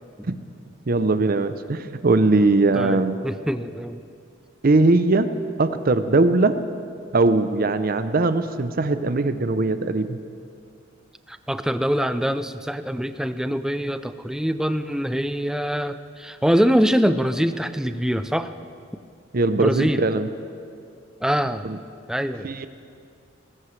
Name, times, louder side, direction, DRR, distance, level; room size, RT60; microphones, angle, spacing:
voice 1, 0.9-3.2 4.6-5.3 5.6-6.5 7.1-10.2 19.3-20.3 21.6-21.8 22.4-22.7, right 3 dB, 45° right, 11 dB, 0.6 m, -20 dB
voice 2, 2.7-4.0 11.3-18.5 19.6-20.1 21.2-21.7 22.1-22.5, equal, 5° right, 11 dB, 0.4 m, -24 dB
19.5 x 15.5 x 3.3 m, 2.4 s
head